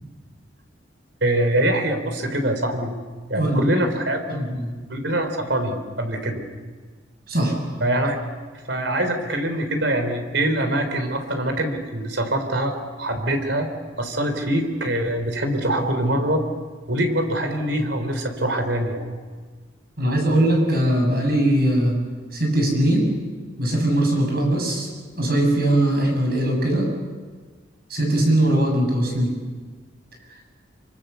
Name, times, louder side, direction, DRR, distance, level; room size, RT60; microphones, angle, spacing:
voice 1, 1.2-2.9 3.3-4.5 4.9-6.4 7.8-8.2 8.7-13.7 14.0-16.4 16.9-19.1, right 1 dB, 70° right, 6 dB, 3.9 m, -24 dB
voice 2, 3.3-3.7 4.3-4.7 7.3-7.6 20.0-22.0 22.3-23.2 23.6-24.9 25.2-26.9 27.9-29.3, right 1 dB, 55° right, 2 dB, 6.9 m, -20 dB
25.5 x 25.0 x 7.0 m, 1.5 s
head